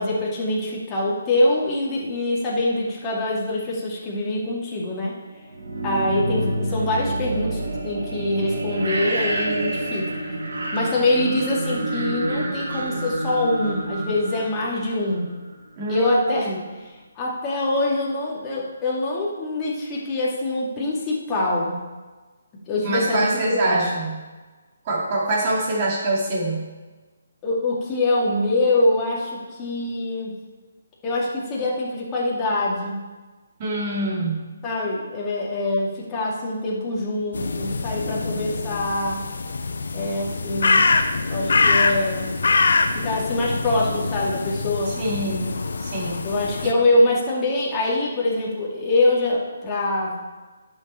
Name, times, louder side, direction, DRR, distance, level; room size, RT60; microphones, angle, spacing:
voice 1, 0.0-5.2 5.8-10.1 10.7-15.3 15.9-16.5 17.2-21.8 22.7-23.9 27.4-30.3 31.0-33.1 34.6-39.3 39.9-40.9 41.3-42.4 42.9-45.0 46.2-50.2, left 2 dB, 20° left, -5 dB, 2.2 m, -24 dB
sound 1, 5.5-15.3, right 1 dB, 70° right, 1.9 m, -28 dB
voice 2, 5.9-6.6 15.8-16.6 22.8-24.2 24.8-26.7 33.6-34.4 44.9-46.3 46.6-46.7, right 1 dB, 35° right, -4 dB, 2.6 m, -25 dB
sound 2, 37.3-46.7, left 4 dB, 65° left, 0.7 m, -24 dB
10.5 x 6.6 x 4.3 m, 1.3 s
figure-of-eight pair, 145°, 0 cm